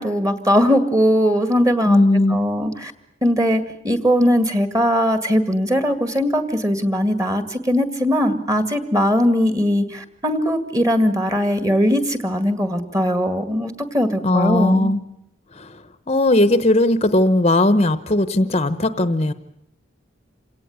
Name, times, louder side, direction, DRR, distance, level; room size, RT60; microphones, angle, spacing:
voice 1, 0.0-2.0 2.3-2.9 3.2-14.9, equal, 15° right, 10 dB, 2.1 m, -20 dB
voice 2, 1.8-2.5 14.2-15.1 15.5-19.3, left 1 dB, 30° left, 13 dB, 0.9 m, -18 dB
28.0 x 17.5 x 9.5 m, 0.82 s
head